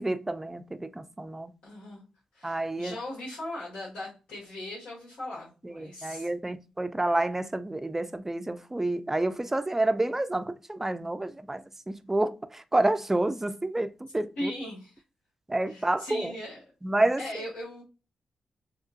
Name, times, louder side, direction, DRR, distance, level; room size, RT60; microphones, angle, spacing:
voice 1, 0.0-1.5 2.4-2.9 5.6-14.5 15.5-16.3 16.8-17.2, right 2 dB, 15° right, 0.3 m, -29 dB
voice 2, 1.6-2.0 2.3-6.3 14.4-14.9 15.7-16.6 17.2-17.8, left 1 dB, 90° left, 1.6 m, -38 dB
2.8 x 2.5 x 2.4 m
cardioid pair, 70°, 2 cm